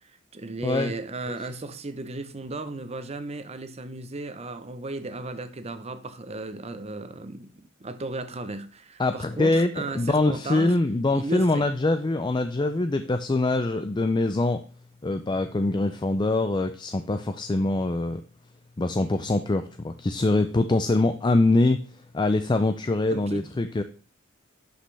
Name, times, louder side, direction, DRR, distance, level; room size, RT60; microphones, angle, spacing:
voice 1, 0.0-10.8 11.1-11.7 23.1-23.5, right 2 dB, 30° right, 0.7 m, -35 dB
voice 2, 0.6-0.9 1.3-1.4 9.0-14.6 15.0-18.2 18.8-21.8 22.1-23.8, left 2 dB, 20° left, 0.4 m, -24 dB
11.0 x 5.3 x 3.3 m
head